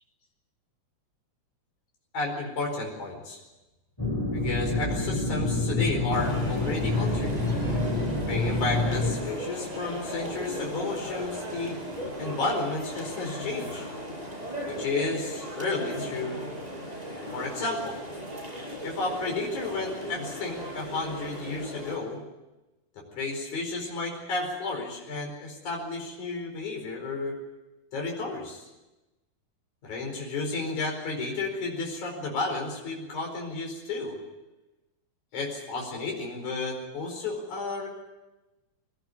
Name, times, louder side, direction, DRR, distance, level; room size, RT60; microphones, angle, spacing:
voice 1, 2.1-3.4 4.3-7.4 8.3-11.8 12.2-13.9 14.6-16.4 17.3-18.0 18.8-22.2 23.0-27.4 27.9-28.7 29.8-34.2 35.3-37.9, left 3 dB, 70° left, 0 dB, 6.2 m, -32 dB
sound 1, 4.0-9.1, left 2 dB, 5° left, 6.4 m, -27 dB
sound 2, 6.1-22.0, equal, 10° right, 6.8 m, -37 dB
22.0 x 17.5 x 9.6 m, 1.0 s
omnidirectional pair, 3.5 m